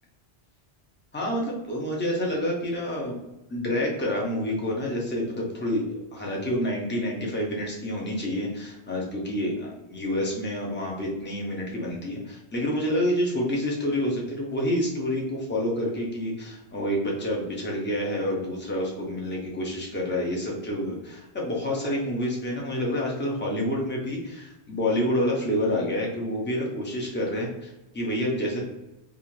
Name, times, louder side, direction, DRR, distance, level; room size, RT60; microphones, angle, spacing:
voice 1, 1.1-3.2 3.5-28.6, left 1 dB, 15° left, -2 dB, 0.4 m, -28 dB
2.5 x 2.4 x 3.0 m, 0.96 s
omnidirectional pair, 1.1 m